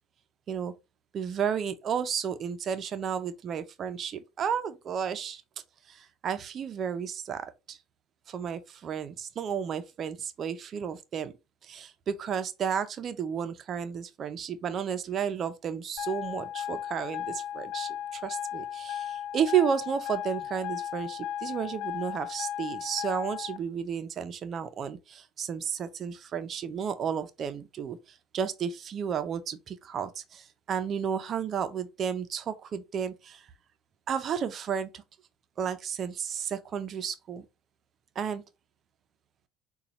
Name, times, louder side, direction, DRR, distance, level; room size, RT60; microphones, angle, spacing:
voice 1, 1.1-5.4 5.9-7.8 8.3-11.3 11.6-33.5 34.1-35.0 35.6-37.4 38.2-38.4, right 7 dB, 45° right, 0.6 m, -32 dB
sound 1, 16.0-23.6, left 10 dB, 75° left, 0.3 m, -36 dB
6.7 x 2.3 x 3.0 m
hypercardioid pair, 70°, 0 cm